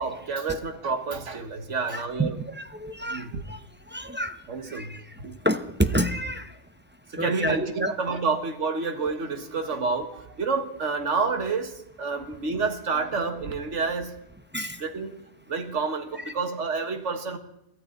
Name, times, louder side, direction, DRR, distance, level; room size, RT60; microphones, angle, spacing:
voice 1, 0.0-2.4 3.1-3.4 4.5-5.4 7.2-14.2 14.8-15.2 15.5-17.4, right 4 dB, 85° right, 7 dB, 1.8 m, -29 dB
voice 2, 1.9-3.6 3.9-4.4 4.7-5.0 5.4-6.5 7.2-7.9 14.5-14.8 16.2-16.3, right 1 dB, 10° right, 8 dB, 0.6 m, -28 dB
22.0 x 14.0 x 3.9 m, 0.80 s
omnidirectional pair, 1.2 m